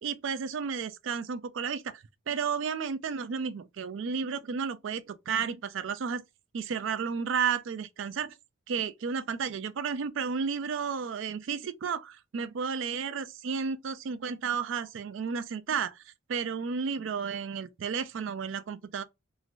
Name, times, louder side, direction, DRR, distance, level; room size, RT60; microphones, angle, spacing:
voice 1, 0.0-6.2 6.5-8.4 8.7-19.0, right 6 dB, 65° right, 0.4 m, -32 dB
3.0 x 2.5 x 2.5 m
head